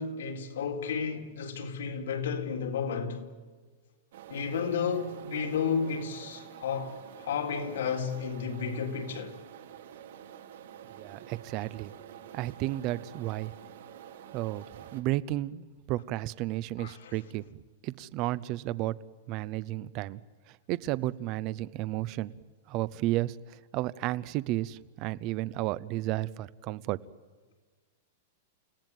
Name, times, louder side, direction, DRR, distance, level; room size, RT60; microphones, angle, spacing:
voice 1, 0.0-3.2 4.3-6.9 7.2-9.3 16.8-17.1, left 6 dB, 80° left, 3.9 m, -32 dB
sound 1, 4.1-15.0, right 9 dB, 65° right, 3.2 m, -48 dB
voice 2, 10.8-13.5 14.3-14.6 14.9-17.4 17.8-19.0 19.3-20.2 20.5-22.3 22.7-27.0, right 16 dB, 35° right, 0.8 m, -33 dB
29.5 x 17.5 x 9.2 m
supercardioid pair, 165°, 0 cm